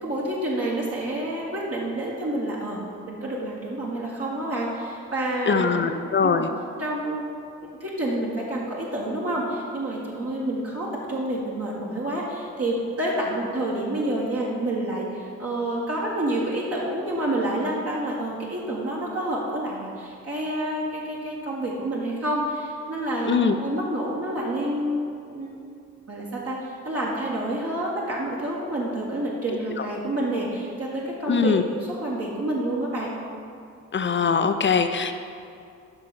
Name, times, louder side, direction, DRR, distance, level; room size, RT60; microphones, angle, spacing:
voice 1, 0.0-5.8 6.2-6.5 6.8-7.3 7.8-25.1 25.3-25.5 26.1-33.1, right 1 dB, 40° right, -5 dB, 1.5 m, -28 dB
voice 2, 5.5-6.5 23.3-23.6 29.8-29.9 31.3-31.6 33.9-35.1, left 5 dB, 30° left, 8 dB, 0.6 m, -22 dB
7.9 x 5.7 x 4.1 m, 2.5 s
hypercardioid pair, 40°, 38 cm